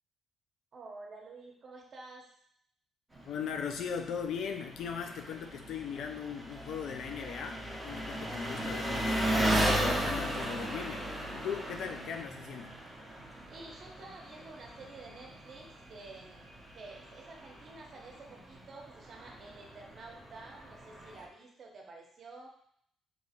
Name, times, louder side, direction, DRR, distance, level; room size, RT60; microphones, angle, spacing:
voice 1, 0.7-2.3 13.4-22.5, right 3 dB, 50° right, 0 dB, 0.8 m, -50 dB
Engine, 3.1-21.3, right 1 dB, 10° right, 0.8 m, -36 dB
voice 2, 3.3-12.8, left 7 dB, 75° left, 5 dB, 0.3 m, -39 dB
3.7 x 2.9 x 2.8 m, 0.66 s
cardioid pair, 90°, 0 cm